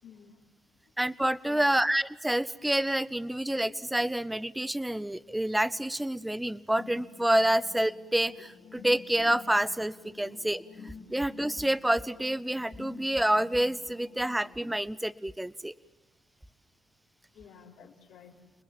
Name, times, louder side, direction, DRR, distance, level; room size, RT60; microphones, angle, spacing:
voice 1, 0.0-0.5 1.5-1.8 10.2-10.3 11.1-11.2 17.3-18.4, left 7 dB, 85° left, -2 dB, 4.1 m, -52 dB
voice 2, 1.0-15.7, right 1 dB, 5° right, 16 dB, 0.8 m, -28 dB
sound 1, 6.8-14.8, left 5 dB, 65° left, 4.2 m, -50 dB
29.5 x 20.5 x 7.4 m, 1.1 s
cardioid pair, 90°, 0 cm